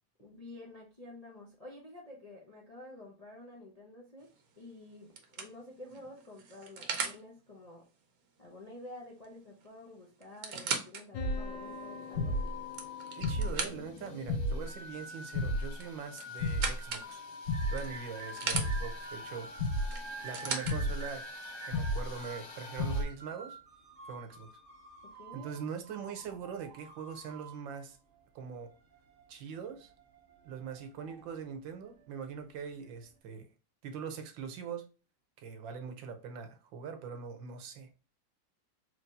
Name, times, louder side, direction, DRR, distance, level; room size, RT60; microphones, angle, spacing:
voice 1, 0.2-7.9 8.4-12.6 25.0-25.5, left 2 dB, 35° left, 0.6 m, -50 dB
sound 1, 4.3-4.6 5.2-7.2 9.2-9.4 9.6-9.7 10.2-11.0 11.6-11.7 12.5-14.1 15.7-17.1 17.8-18.7 19.9-20.8 21.7-21.8, right 5 dB, 55° right, 1.1 m, -37 dB
sound 2, 11.1-23.0, left 1 dB, 70° left, 1.5 m, -36 dB
voice 2, 13.2-17.2 17.7-19.5 20.2-21.3 21.6-23.6 24.1-24.5 25.3-28.0 28.3-28.8 29.3-29.9 30.4-33.5 33.8-34.9 35.4-37.9, right 6 dB, 75° right, 1.5 m, -42 dB
sound 3, 17.5-33.2, right 6 dB, 40° right, 0.8 m, -51 dB
4.5 x 3.1 x 2.6 m
omnidirectional pair, 2.1 m